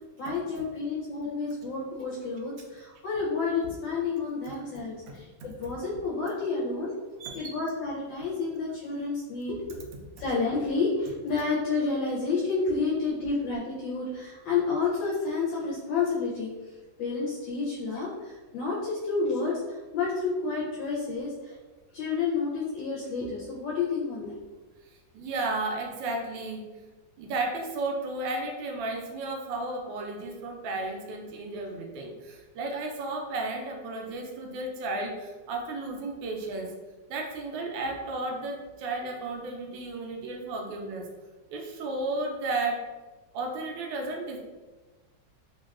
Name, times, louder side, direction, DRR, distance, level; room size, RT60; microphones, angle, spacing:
voice 1, 0.2-6.9 7.3-9.8 10.2-21.6 21.9-24.4, left 4 dB, 80° left, -5 dB, 1.3 m, -30 dB
voice 2, 7.2-7.5 25.1-26.6 27.2-36.7 37.1-41.1 41.5-42.8 43.3-44.4, right 2 dB, 90° right, 1 dB, 1.3 m, -33 dB
3.4 x 2.2 x 2.3 m, 1.2 s
omnidirectional pair, 2.0 m